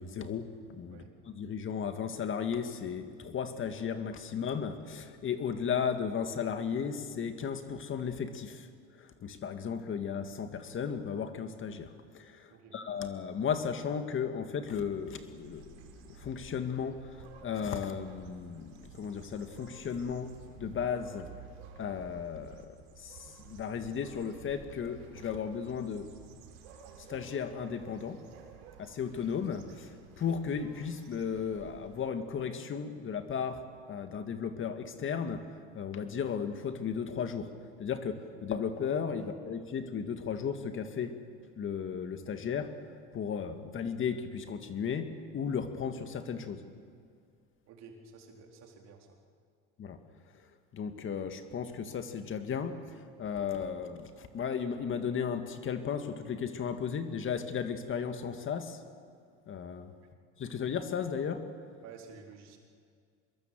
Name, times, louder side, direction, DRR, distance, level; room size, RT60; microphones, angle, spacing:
voice 1, 0.0-8.7 9.0-21.3 21.8-26.1 27.0-28.2 28.8-35.5 35.7-37.5 37.8-41.2 41.6-42.7 43.1-46.6 49.8-50.0 50.7-58.8 59.5-59.9 60.4-61.4, left 7 dB, 40° left, 8 dB, 2.1 m, -35 dB
sound 1, 14.9-32.2, right 6 dB, 80° right, 4.3 m, -53 dB
voice 2, 47.7-49.2 61.8-62.6, right 5 dB, 60° right, 2 dB, 4.1 m, -51 dB
25.0 x 21.5 x 7.7 m, 2.2 s
supercardioid pair, 95°, 30 cm